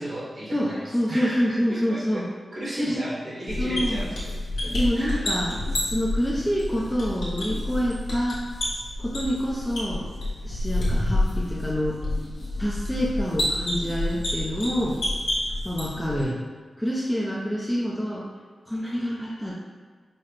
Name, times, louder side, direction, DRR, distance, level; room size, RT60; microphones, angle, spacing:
voice 1, 0.0-2.2 2.5-4.3 4.6-5.2 5.7-5.8 16.1-16.4, right 1 dB, 50° right, -7 dB, 1.3 m, -35 dB
voice 2, 0.5-2.3 2.8-3.0 3.6-4.1 4.7-5.6 5.9-8.4 9.0-10.1 10.4-12.0 12.6-15.0 15.6-16.4 16.8-18.3 18.7-19.5, equal, 5° left, -5 dB, 0.5 m, -27 dB
sound 1, 3.5-16.2, left 1 dB, 90° left, 1.3 m, -29 dB
5.7 x 2.1 x 3.2 m, 1.5 s
wide cardioid pair, 135°, 0 cm